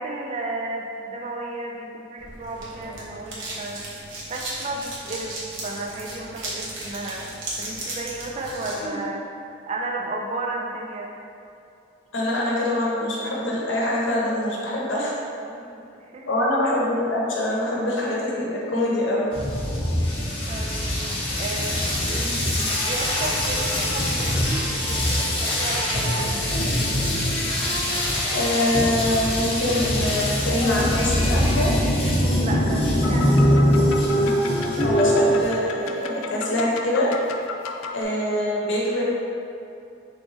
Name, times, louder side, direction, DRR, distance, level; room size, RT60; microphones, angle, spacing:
voice 1, 0.0-5.3 5.6-9.2 9.7-11.1 15.4-16.3 20.5-26.5 32.3-33.5 38.2-38.5, right 2 dB, 30° right, -1 dB, 0.3 m, -33 dB
sound 1, 2.2-8.8, right 2 dB, 80° right, 1.0 m, -35 dB
voice 2, 12.1-15.1 16.3-19.3 28.2-31.7 34.8-37.1 37.9-39.0, left 1 dB, 70° left, -4 dB, 0.8 m, -24 dB
sound 2, 19.3-35.5, equal, 30° left, 0.7 m, -23 dB
sound 3, 33.0-38.0, left 4 dB, 85° left, 0.3 m, -35 dB
4.0 x 3.6 x 2.6 m, 2.6 s
head